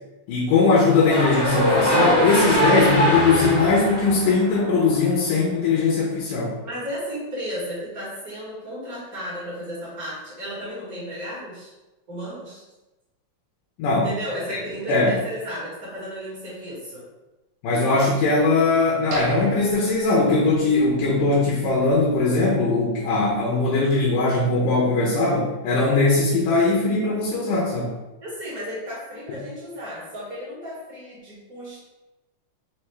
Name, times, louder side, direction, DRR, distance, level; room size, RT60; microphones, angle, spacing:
voice 1, 0.3-6.5 13.8-14.1 14.5-14.6 14.9-15.2 17.6-28.0, left 3 dB, 75° left, -4 dB, 2.2 m, -20 dB
sound 1, 0.9-5.1, equal, 55° left, 0.7 m, -22 dB
voice 2, 6.6-11.7 12.1-12.6 14.0-17.1 28.2-31.8, equal, 50° right, -8 dB, 1.0 m, -34 dB
sound 2, 19.1-21.0 21.4-21.5 22.0-22.2, right 4 dB, 75° right, 2.1 m, -36 dB
5.6 x 2.6 x 3.2 m, 1.1 s
omnidirectional pair, 3.9 m